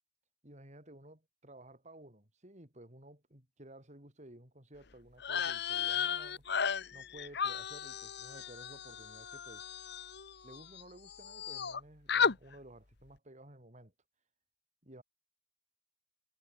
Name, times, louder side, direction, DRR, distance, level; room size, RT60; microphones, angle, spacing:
voice 1, 0.4-6.5 6.9-9.7 10.4-13.9 14.8-15.0, right 1 dB, 40° right, 5.4 m, -54 dB
sound 1, 5.2-10.8 11.1-11.8 12.1-12.4, left 7 dB, 60° left, 1.1 m, -35 dB
head